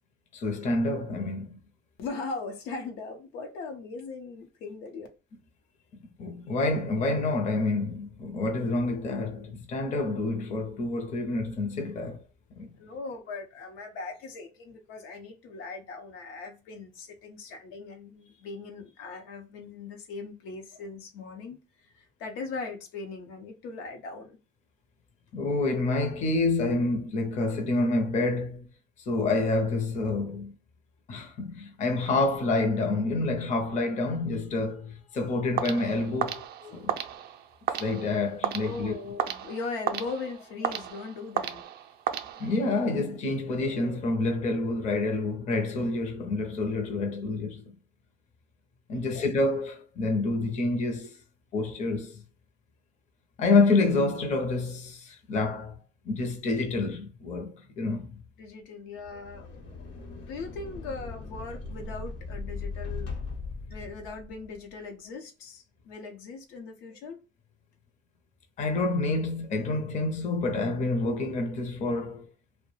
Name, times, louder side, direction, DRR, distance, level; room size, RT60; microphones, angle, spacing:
voice 1, 0.3-1.6 6.2-12.2 12.6-12.7 25.3-28.7 29.1-30.5 31.1-36.9 37.8-39.0 42.4-47.7 48.9-51.2 51.5-52.2 53.4-55.8 56.0-58.2 68.6-72.3, left 3 dB, 40° left, 0.6 m, -28 dB
voice 2, 2.0-5.1 12.8-24.4 38.6-41.6 49.0-49.3 58.4-59.9 60.3-63.1 63.7-67.2, left 4 dB, 85° left, 0.7 m, -39 dB
sound 1, 35.6-42.8, right 10 dB, 55° right, 0.4 m, -34 dB
sound 2, 59.0-64.6, left 4 dB, 65° left, 0.9 m, -39 dB
2.2 x 2.1 x 3.1 m
cardioid pair, 135°, 20 cm